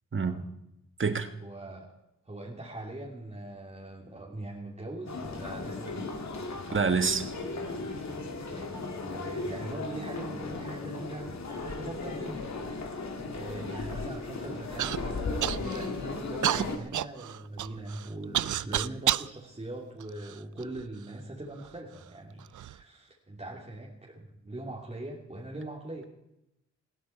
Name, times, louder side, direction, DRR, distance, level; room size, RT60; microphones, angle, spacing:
voice 1, 0.1-0.4 1.0-1.3 6.7-7.3, right 5 dB, 40° right, 1.6 m, -27 dB
voice 2, 1.4-1.9 2.2-6.0 8.5-12.6 12.8-13.0 13.3-26.1, right 1 dB, 20° right, 2.9 m, -41 dB
sound 1, 5.1-16.8, left 3 dB, 65° left, 2.6 m, -36 dB
Human voice / Cough, 14.8-15.0 15.4-15.9 16.4-19.3 20.0-20.8 21.6-21.7 22.4-22.7, right 11 dB, 85° right, 0.5 m, -30 dB
19.0 x 16.0 x 4.6 m
wide cardioid pair, 95°, 30 cm